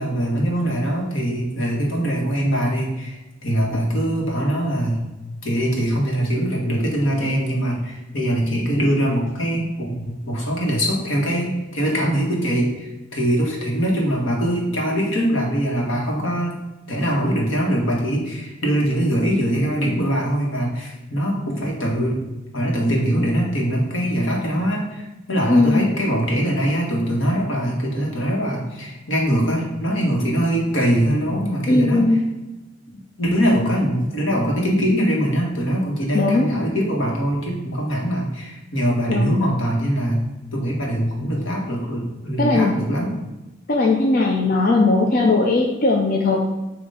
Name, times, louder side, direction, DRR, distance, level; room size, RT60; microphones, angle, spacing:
voice 1, 0.0-5.0 5.4-16.5 16.9-22.2 22.5-32.2 33.2-43.2, equal, 75° left, -2 dB, 1.6 m, -22 dB
voice 2, 25.5-25.9 31.7-32.2 36.1-36.5 39.1-39.4 42.4-42.7 43.7-46.5, left 3 dB, 50° left, 0 dB, 0.6 m, -18 dB
7.7 x 2.9 x 5.0 m, 1.1 s
head